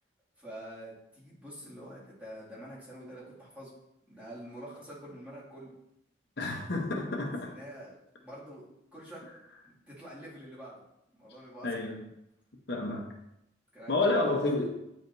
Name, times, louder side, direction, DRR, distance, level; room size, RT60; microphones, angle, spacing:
voice 1, 0.4-3.7 4.1-5.7 7.5-7.9 8.2-8.6 8.9-9.2 9.6-10.8 11.1-11.8 13.7-13.9 14.5-14.6, right 1 dB, 5° right, -8 dB, 2.3 m, -46 dB
voice 2, 6.4-7.5 11.6-12.1 12.7-13.1 13.9-14.7, left 2 dB, 60° left, 0 dB, 0.9 m, -29 dB
9.1 x 4.9 x 2.7 m, 0.85 s
head